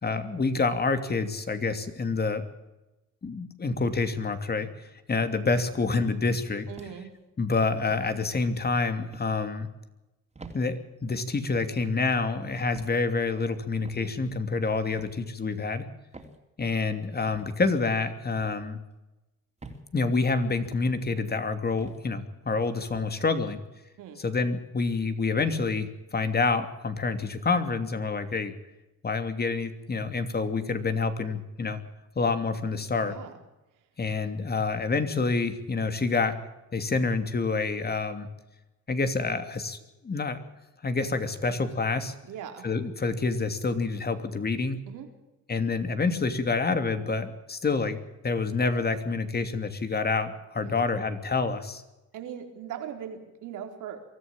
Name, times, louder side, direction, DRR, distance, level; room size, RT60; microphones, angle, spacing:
voice 1, 0.0-2.4 3.2-6.7 7.4-9.7 10.5-15.9 16.6-18.8 19.9-23.6 24.2-28.5 29.0-31.8 32.2-33.2 34.0-36.3 36.7-38.3 38.9-39.8 40.0-40.4 40.8-42.1 42.6-44.9 45.5-51.8, left 4 dB, 30° left, 9 dB, 2.8 m, -27 dB
voice 2, 6.7-7.1 24.0-24.2 33.0-33.4 42.2-42.6 44.9-45.1 50.6-50.9 52.1-54.0, right 9 dB, 90° right, 5 dB, 3.9 m, -40 dB
sound 1, 6.8-7.2 7.9-8.1 9.1-9.4 10.3-10.6 11.5-11.8 12.7-13.0 13.8-14.1 14.9-15.2 16.1-16.4 17.3-17.5 18.4-18.6 19.6-19.9 20.6-20.9 21.8-22.0 22.9-23.1, right 3 dB, 20° right, 3.8 m, -47 dB
23.5 x 14.5 x 8.9 m, 1.0 s
cardioid pair, 90°, 30 cm